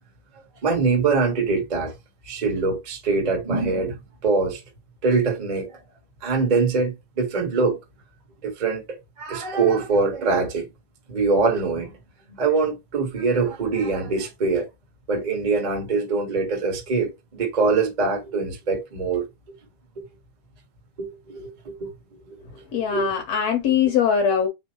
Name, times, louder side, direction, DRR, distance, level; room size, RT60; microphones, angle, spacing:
voice 1, 0.6-1.9 2.2-4.6 5.0-5.8 6.2-7.8 8.4-10.7 11.1-12.0 12.3-14.7 15.1-19.3 21.0-21.9 22.3-22.5 22.7-23.1, right 4 dB, 75° right, 0.4 m, -23 dB
voice 2, 22.7-24.5, left 7 dB, 65° left, 1.9 m, -21 dB
5.4 x 2.0 x 4.4 m
omnidirectional pair, 3.7 m